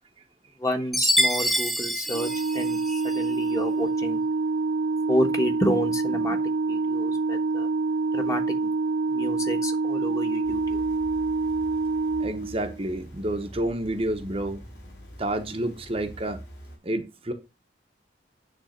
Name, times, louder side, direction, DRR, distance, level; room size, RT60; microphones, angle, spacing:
voice 1, 0.6-4.2 5.1-6.4 6.7-7.7 8.1-8.7 9.1-10.8, equal, 20° left, 1.4 m, -30 dB
Chime, 0.9-3.3, equal, ahead, 0.6 m, -26 dB
Organ, 2.1-12.9, right 3 dB, 75° right, 0.4 m, -26 dB
sound 1, 10.4-16.8, equal, 70° left, 4.3 m, -45 dB
voice 2, 12.2-14.6 15.2-16.4 16.8-17.3, right 1 dB, 30° right, 1.0 m, -29 dB
10.0 x 3.5 x 6.5 m
head